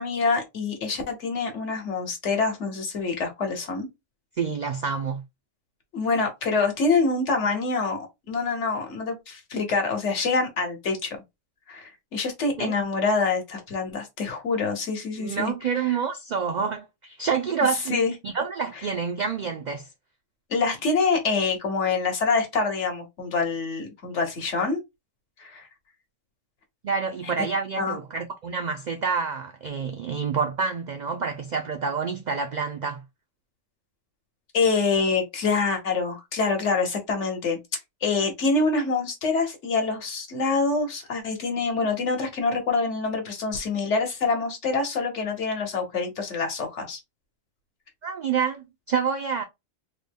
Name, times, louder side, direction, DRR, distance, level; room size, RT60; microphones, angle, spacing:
voice 1, 0.0-3.9 5.9-11.2 11.7-15.5 17.9-18.1 20.5-24.8 25.4-25.7 27.2-27.3 27.8-28.0 34.5-37.6 38.0-47.0, left 4 dB, 65° left, 1.4 m, -26 dB
voice 2, 4.4-5.2 12.6-12.8 15.2-19.9 26.8-33.0 48.0-49.4, right 6 dB, 65° right, 0.4 m, -28 dB
3.7 x 2.1 x 3.4 m
omnidirectional pair, 1.3 m